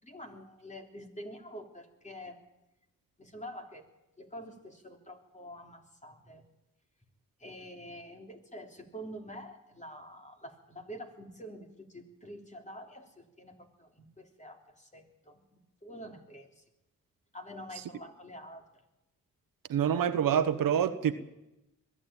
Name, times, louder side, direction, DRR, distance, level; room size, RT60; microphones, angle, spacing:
voice 1, 0.0-2.4 3.2-3.9 4.2-6.4 7.4-16.6 17.3-18.6, equal, 20° left, 3.4 m, -47 dB
voice 2, 19.7-21.1, right 9 dB, 80° right, 1.2 m, -26 dB
22.0 x 13.0 x 8.9 m
cardioid pair, 75°, 34 cm